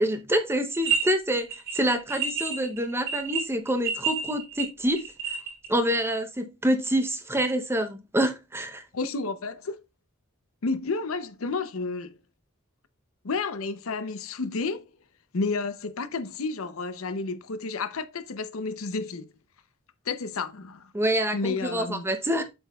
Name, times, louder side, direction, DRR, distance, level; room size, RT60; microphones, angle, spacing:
voice 1, 0.0-1.5 1.7-5.0 5.7-8.8 20.9-22.4, right 1 dB, 10° right, 0.7 m, -26 dB
sound 1, 0.8-1.0 1.3-5.7, right 6 dB, 60° right, 3.1 m, -29 dB
voice 2, 8.9-9.8 10.6-12.2 13.2-14.8 15.3-19.3 20.1-20.9 21.3-22.1, left 4 dB, 75° left, 0.7 m, -31 dB
7.7 x 6.3 x 2.3 m
head